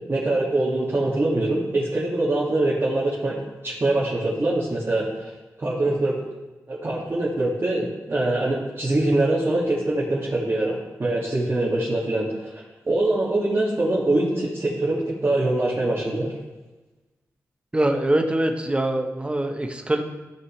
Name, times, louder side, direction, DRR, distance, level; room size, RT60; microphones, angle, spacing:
voice 1, 0.1-3.4 3.6-5.3 5.6-6.1 6.7-16.3, right 2 dB, 40° right, -7 dB, 2.2 m, -23 dB
voice 2, 17.7-20.0, right 1 dB, 20° right, 4 dB, 1.0 m, -23 dB
14.0 x 6.9 x 3.2 m, 1.2 s
cardioid pair, 80°, 6 cm